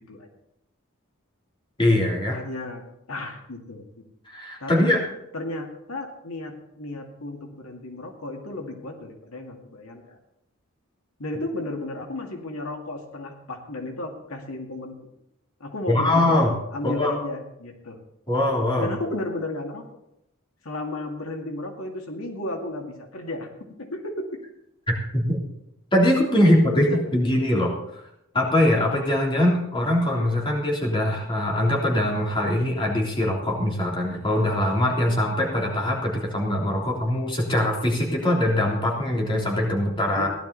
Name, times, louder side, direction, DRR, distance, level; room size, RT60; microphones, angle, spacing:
voice 1, 1.8-2.4 4.3-5.0 15.9-16.5 16.8-17.1 18.3-18.9 25.1-25.4 25.9-26.8 27.1-27.7 28.3-40.3, left 1 dB, 25° left, -2 dB, 3.4 m, -22 dB
voice 2, 2.3-2.8 3.1-3.8 4.6-4.9 5.3-10.2 11.2-14.9 15.6-16.4 16.7-18.0 18.8-19.8 20.6-23.5 23.8-24.4 26.7-27.2 40.1-40.3, left 2 dB, 85° left, 2 dB, 2.2 m, -33 dB
16.5 x 12.0 x 4.1 m, 0.82 s
head